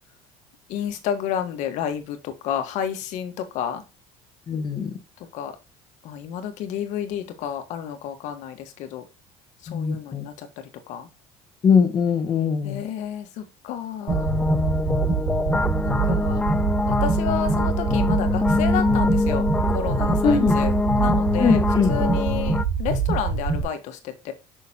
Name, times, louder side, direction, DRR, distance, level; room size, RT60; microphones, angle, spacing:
voice 1, 0.7-3.8 5.2-5.5 6.0-9.0 9.6-11.1 12.6-14.3 15.8-16.4 16.9-21.6 21.9-24.3, left 9 dB, 70° left, 1.6 m, -31 dB
voice 2, 4.5-4.9 9.7-10.2 11.6-12.8 20.2-20.5 21.4-21.9, left 6 dB, 35° left, 1.4 m, -21 dB
sound 1, 14.1-22.6, left 3 dB, 10° left, 0.3 m, -24 dB
sound 2, 14.1-23.6, right 5 dB, 55° right, 2.0 m, -25 dB
6.5 x 6.3 x 2.9 m
cardioid pair, 130°, 13 cm